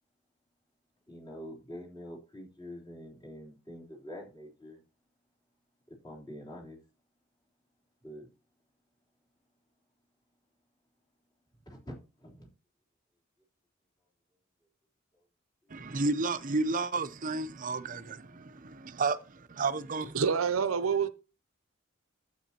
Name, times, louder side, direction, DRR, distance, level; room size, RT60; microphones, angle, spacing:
voice 1, 1.1-4.8 5.9-6.8 8.0-8.3 11.6-12.5, equal, 20° left, 3.5 m, -46 dB
voice 2, 15.7-20.2, right 3 dB, 40° right, 0.7 m, -32 dB
voice 3, 20.1-21.1, right 6 dB, 85° right, 0.7 m, -27 dB
12.0 x 8.3 x 2.9 m
head